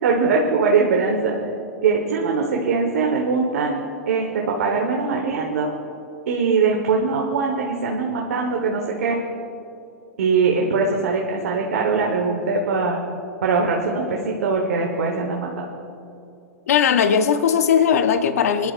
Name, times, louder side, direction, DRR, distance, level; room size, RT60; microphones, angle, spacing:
voice 1, 0.0-1.4 1.8-5.7 6.3-9.2 10.2-13.0 13.4-15.6, right 4 dB, 80° right, 0 dB, 1.3 m, -21 dB
voice 2, 16.7-18.7, left 7 dB, 80° left, 9 dB, 0.7 m, -18 dB
24.0 x 11.0 x 2.5 m, 2.7 s
hypercardioid pair, 120°, 8 cm